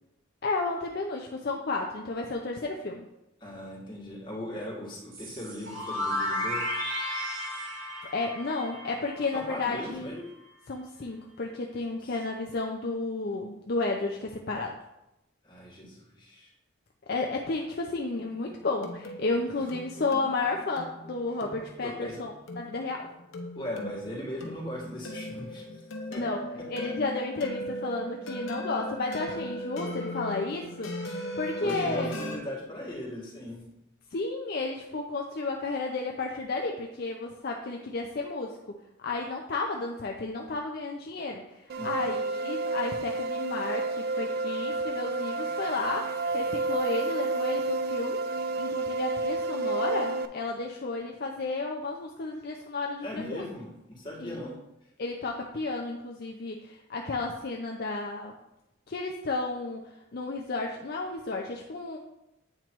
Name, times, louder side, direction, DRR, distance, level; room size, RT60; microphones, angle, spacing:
voice 1, 0.4-3.0 8.1-10.1 10.7-14.8 17.1-23.1 26.1-32.2 34.1-48.3 48.6-53.4 54.2-54.4 55.0-58.3 58.9-62.0, left 3 dB, 50° left, 1 dB, 0.5 m, -32 dB
voice 2, 3.4-6.8 9.3-10.2 15.4-16.5 21.8-22.2 23.6-25.6 26.1-26.2 30.8-30.9 31.6-33.7 41.8-42.1 53.0-54.6, left 1 dB, 20° left, -5 dB, 1.8 m, -38 dB
sound 1, 5.1-9.9, left 1 dB, 70° right, 1.2 m, -34 dB
sound 2, 18.2-32.4, equal, 75° left, 1.0 m, -38 dB
sound 3, 41.7-50.3, right 3 dB, 45° right, 0.3 m, -30 dB
8.7 x 3.0 x 4.5 m, 0.88 s
head